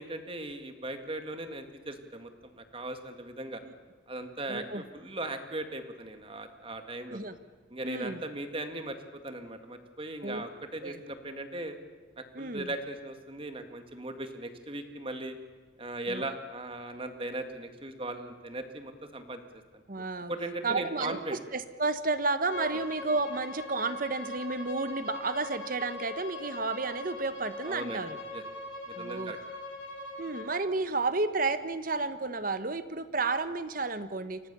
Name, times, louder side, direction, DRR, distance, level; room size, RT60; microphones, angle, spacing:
voice 1, 0.0-3.6 4.1-7.2 7.7-11.8 12.2-15.4 15.8-19.4 19.7-19.8 20.3-21.4 27.6-28.0 28.3-28.4 28.9-29.4, right 2 dB, 25° right, 7 dB, 2.0 m, -38 dB
voice 2, 4.5-4.8 7.1-7.4 7.8-8.2 10.2-10.4 10.8-11.0 12.3-12.7 16.1-16.2 19.9-20.3 20.6-28.2 29.0-29.3 30.2-34.4, right 3 dB, 45° right, 12 dB, 1.2 m, -32 dB
Bowed string instrument, 22.5-30.5, left 1 dB, 65° left, 6.8 m, -41 dB
29.5 x 25.0 x 7.0 m, 1.5 s
head